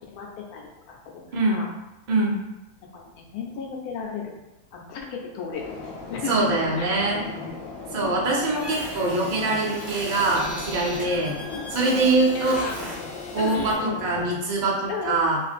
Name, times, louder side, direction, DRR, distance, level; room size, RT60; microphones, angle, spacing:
voice 1, 0.1-1.7 2.9-4.3 4.7-5.7 6.1-7.0 7.9-8.2 11.4-11.8 12.3-12.8 13.4-14.0 14.9-15.4, left 5 dB, 85° left, 0 dB, 1.1 m, -34 dB
voice 2, 1.3-1.7 2.1-2.4 6.3-7.2 7.9-11.4 11.7-12.7 13.3-15.4, right 2 dB, 60° right, -3 dB, 0.4 m, -23 dB
sound 1, 5.5-14.3, left 4 dB, 65° left, 0.7 m, -37 dB
sound 2, 8.5-13.7, equal, 15° left, 0.5 m, -38 dB
2.9 x 2.5 x 2.4 m, 1.0 s
omnidirectional pair, 1.6 m